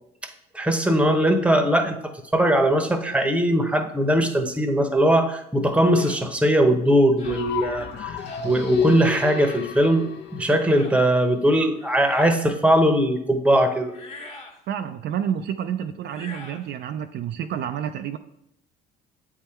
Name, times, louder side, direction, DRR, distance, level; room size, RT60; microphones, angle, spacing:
voice 1, 0.5-2.0 2.3-13.9, right 1 dB, 5° right, 6 dB, 0.9 m, -20 dB
sound 1, 5.9-6.2 7.2-7.5 8.2-8.5 9.3-9.6 10.6-11.0 11.8-12.5 13.9-14.6 16.0-16.7, left 3 dB, 30° left, 1.3 m, -42 dB
sound 2, 7.2-11.2, left 8 dB, 60° left, 0.8 m, -31 dB
voice 2, 14.7-18.2, right 9 dB, 55° right, 8 dB, 0.4 m, -29 dB
7.8 x 3.7 x 4.4 m, 0.77 s
supercardioid pair, 80°, 21 cm